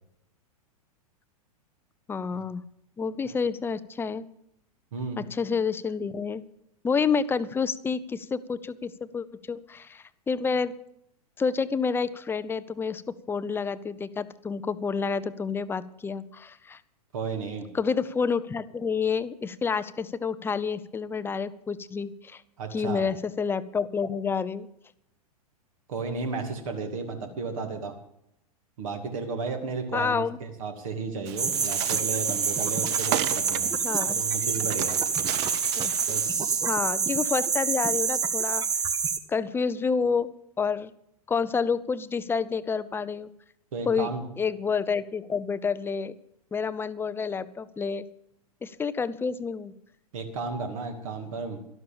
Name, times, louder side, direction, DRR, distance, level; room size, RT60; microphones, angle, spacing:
voice 1, 2.1-2.6 3.0-4.2 5.2-6.4 6.8-10.7 11.4-13.0 13.3-16.8 17.7-22.4 22.7-24.7 29.9-30.4 33.8-34.2 35.8-35.9 36.6-38.7 39.3-40.3 40.6-40.9 41.3-43.3 43.9-44.1 44.4-46.2 46.5-48.1 48.6-49.7, left 5 dB, 10° left, 15 dB, 0.6 m, -29 dB
voice 2, 17.1-17.7 22.6-23.0 25.9-27.9 28.8-33.7 34.1-35.0 36.1-36.6 43.7-44.2 50.1-51.6, right 4 dB, 60° right, 5 dB, 2.4 m, -33 dB
Bird, 31.3-36.4, right 14 dB, 45° right, 0.7 m, -35 dB
sound 1, 31.4-39.2, right 6 dB, 20° right, 1.0 m, -27 dB
12.5 x 12.0 x 7.0 m, 0.76 s
figure-of-eight pair, 95°, 20 cm